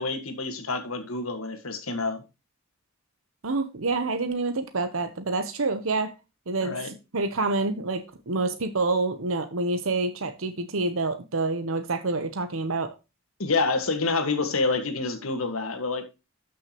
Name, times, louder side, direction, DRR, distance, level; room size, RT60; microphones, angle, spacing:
voice 1, 0.0-2.2 6.6-6.9 13.4-16.1, left 3 dB, 90° left, 1.7 m, -27 dB
voice 2, 3.4-6.1 6.5-12.9, right 3 dB, 75° right, 0.9 m, -27 dB
13.0 x 6.2 x 3.0 m
head